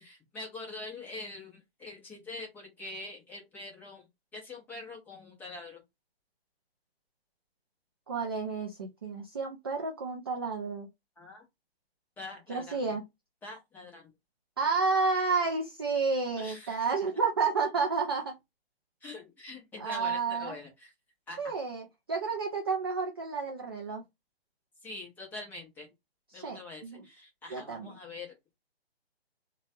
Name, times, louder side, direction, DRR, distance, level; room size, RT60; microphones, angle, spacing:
voice 1, 0.0-5.8 11.2-11.4 12.2-13.0 13.4-14.1 16.4-16.8 19.0-20.9 21.3-21.5 24.8-25.9 26.3-28.3, left 2 dB, 5° left, 0.8 m, -44 dB
voice 2, 8.1-10.9 12.5-13.0 14.6-18.3 19.8-20.5 21.4-21.8 22.1-24.0 26.3-26.6 26.8-27.0 27.5-27.9, right 4 dB, 25° right, 0.3 m, -30 dB
3.1 x 2.3 x 2.6 m
figure-of-eight pair, 135°, 31 cm